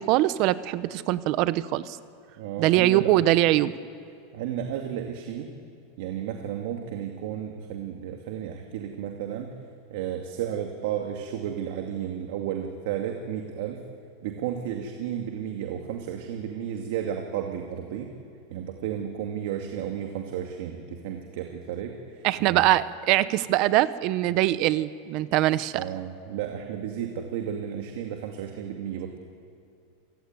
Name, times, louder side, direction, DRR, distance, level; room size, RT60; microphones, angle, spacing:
voice 1, 0.0-2.0 2.6-3.8 22.2-25.8, right 15 dB, 45° right, 15 dB, 0.9 m, -22 dB
voice 2, 2.4-3.2 4.3-5.5 6.0-9.5 9.9-13.8 14.2-18.1 18.5-22.6 25.7-29.2, right 9 dB, 60° right, 3 dB, 2.4 m, -33 dB
28.0 x 16.5 x 9.6 m, 2.4 s
supercardioid pair, 150°, 0 cm